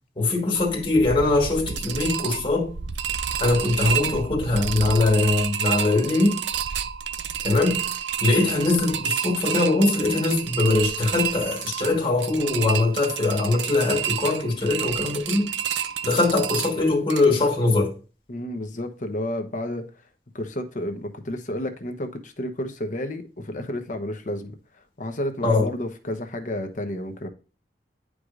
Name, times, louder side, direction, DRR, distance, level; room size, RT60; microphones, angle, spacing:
voice 1, 0.2-2.7 3.4-6.4 7.4-7.8 8.2-15.5 16.0-17.9 25.4-25.7, left 2 dB, 30° left, 1.5 m, -22 dB
sound 1, 0.5-17.2, right 8 dB, 90° right, 0.5 m, -30 dB
voice 2, 18.3-19.9 20.3-24.5 25.0-27.3, left 1 dB, 45° left, 1.0 m, -31 dB
10.0 x 4.8 x 2.5 m
head